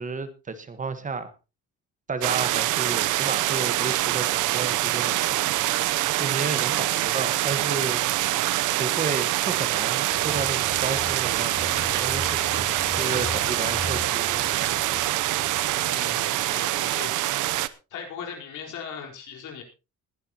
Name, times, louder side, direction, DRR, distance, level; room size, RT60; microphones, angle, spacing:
voice 1, 0.0-1.3 2.1-5.5 6.2-8.0 8.8-12.4 12.9-15.0, right 4 dB, 25° right, 10 dB, 1.4 m, -32 dB
sound 1, 2.2-17.7, right 15 dB, 80° right, 0.8 m, -25 dB
Motorcycle / Engine, 10.1-16.5, left 3 dB, 20° left, 3.8 m, -38 dB
voice 2, 15.8-17.1 17.9-19.6, left 7 dB, 80° left, 2 dB, 4.4 m, -38 dB
21.0 x 11.5 x 2.9 m, 0.29 s
cardioid pair, 145°, 30 cm